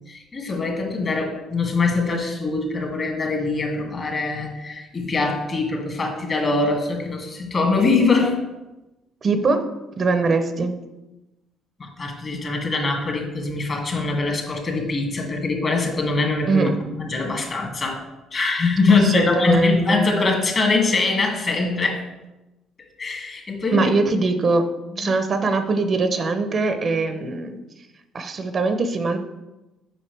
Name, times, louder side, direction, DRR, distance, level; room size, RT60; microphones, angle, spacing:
voice 1, 0.1-8.4 11.8-16.7 17.0-18.0 18.3-22.0 23.0-23.9, left 3 dB, 40° left, 2 dB, 2.0 m, -23 dB
voice 2, 9.2-9.6 10.0-10.7 16.5-16.8 18.9-20.1 23.7-24.6 25.0-27.6 28.1-29.2, right 3 dB, 45° right, 8 dB, 0.8 m, -22 dB
7.6 x 5.5 x 3.4 m, 1.0 s
hypercardioid pair, 60°, 0 cm